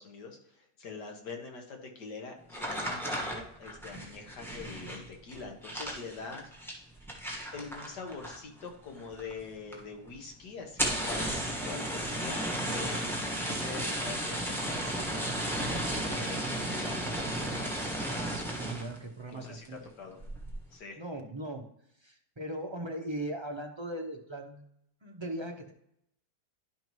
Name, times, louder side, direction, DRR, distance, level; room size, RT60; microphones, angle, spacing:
voice 1, 0.0-6.8 7.5-15.0 15.5-16.5 19.3-20.2 20.7-21.0, left 4 dB, 85° left, 3 dB, 1.9 m, -44 dB
sound 1, 2.5-8.6 8.9-9.4 9.7-9.8 10.1-10.2 10.6-19.0 19.4-19.8 20.2-20.6, right 1 dB, ahead, 1.3 m, -34 dB
voice 2, 18.0-19.8 21.0-21.7 22.0-24.6 25.0-25.7, right 1 dB, 45° right, 2 dB, 0.3 m, -39 dB
11.0 x 5.3 x 3.1 m, 0.73 s
omnidirectional pair, 1.7 m